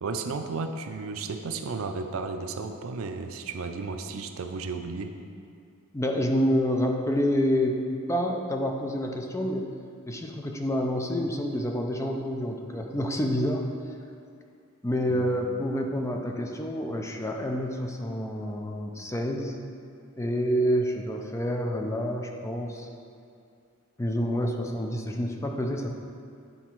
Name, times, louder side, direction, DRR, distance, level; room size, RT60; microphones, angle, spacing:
voice 1, 0.0-5.1 15.1-15.3, right 4 dB, 75° right, 6 dB, 0.5 m, -33 dB
voice 2, 5.9-7.8 8.1-9.7 10.1-13.7 14.8-19.6 20.2-22.9 24.0-25.9, equal, 15° left, 2 dB, 0.5 m, -28 dB
9.3 x 4.0 x 4.5 m, 2.4 s
head